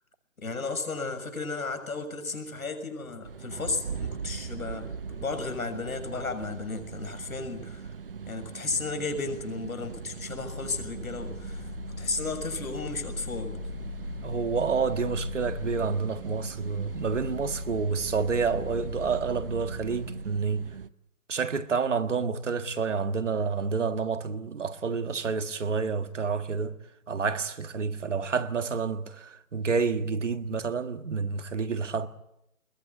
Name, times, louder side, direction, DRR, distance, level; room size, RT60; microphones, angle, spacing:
voice 1, 0.4-7.9 8.3-11.7 12.0-13.6, left 3 dB, 85° left, 6.5 m, -34 dB
sound 1, 3.2-20.9, right 6 dB, 40° right, 0.8 m, -41 dB
sound 2, 10.4-20.0, left 4 dB, 60° left, 7.2 m, -39 dB
voice 2, 14.2-20.7 21.3-26.8 27.1-32.1, right 5 dB, 60° right, 1.7 m, -29 dB
22.0 x 21.5 x 8.7 m
hypercardioid pair, 165°, 41 cm